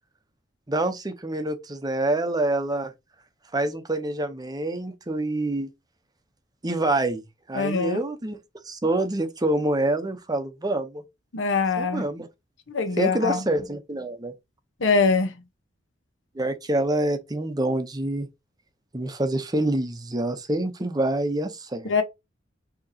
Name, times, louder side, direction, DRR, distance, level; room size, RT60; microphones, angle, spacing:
voice 1, 0.7-2.9 3.5-5.7 6.6-8.4 8.7-11.0 11.8-12.3 13.0-14.3 16.4-18.3 18.9-21.9, right 1 dB, 20° right, 0.6 m, -26 dB
voice 2, 7.5-8.0 11.3-12.0 12.7-13.4 14.8-15.3 21.8-22.0, left 4 dB, 85° left, 1.0 m, -23 dB
6.2 x 2.9 x 2.7 m
head